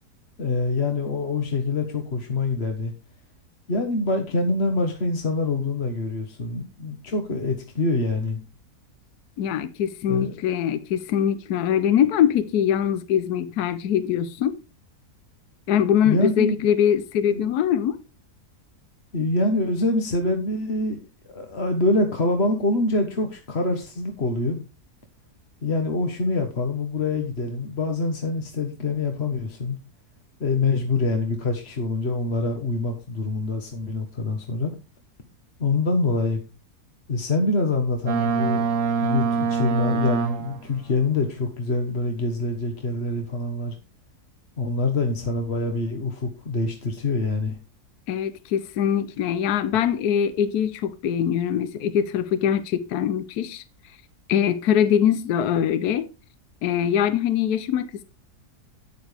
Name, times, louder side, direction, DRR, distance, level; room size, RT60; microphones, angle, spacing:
voice 1, 0.4-2.9 3.7-8.4 10.1-10.3 16.0-16.5 17.3-17.5 19.1-24.6 25.6-29.8 30.4-34.7 35.6-36.4 37.1-38.7 39.0-43.7 44.6-47.6, left 2 dB, 45° left, 1.5 m, -25 dB
voice 2, 9.4-14.6 15.7-18.0 48.1-53.6 54.3-56.1 56.6-58.0, left 9 dB, 75° left, 1.3 m, -23 dB
Boat Water vehicle, 38.1-40.8, right 5 dB, 55° right, 1.4 m, -24 dB
12.5 x 9.4 x 3.4 m
omnidirectional pair, 1.7 m